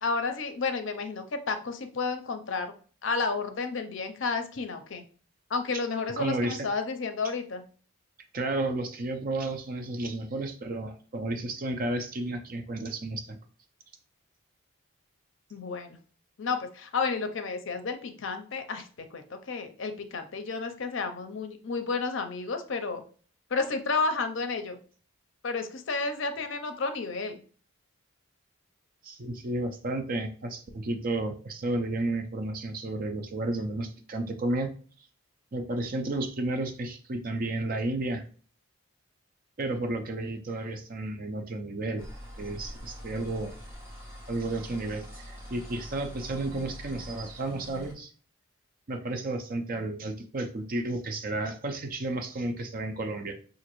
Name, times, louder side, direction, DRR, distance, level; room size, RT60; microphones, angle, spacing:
voice 1, 0.0-2.7 3.0-5.1 5.5-7.6 15.5-16.0 16.4-23.0 23.5-24.8 25.4-27.4, left 4 dB, 60° left, 7 dB, 0.5 m, -31 dB
voice 2, 6.2-6.7 8.3-13.2 29.0-34.7 35.0-35.1 35.5-38.2 39.6-42.0 42.4-43.5 44.3-48.1 48.9-53.3, right 2 dB, 40° right, 6 dB, 0.5 m, -32 dB
sound 1, 42.0-47.9, equal, 10° right, 1.0 m, -44 dB
4.9 x 2.5 x 3.0 m, 0.42 s
head